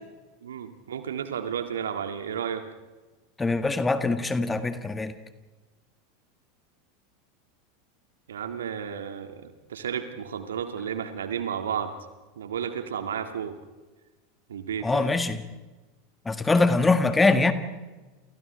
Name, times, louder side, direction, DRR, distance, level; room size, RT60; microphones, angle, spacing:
voice 1, 0.4-2.6 8.3-11.9 12.4-13.6 14.5-15.1, right 8 dB, 70° right, 7 dB, 2.0 m, -32 dB
voice 2, 3.4-5.1 14.8-15.4 16.3-17.5, left 3 dB, 15° left, 9 dB, 1.8 m, -23 dB
29.5 x 29.0 x 3.4 m, 1.2 s
figure-of-eight pair, 85°, 0 cm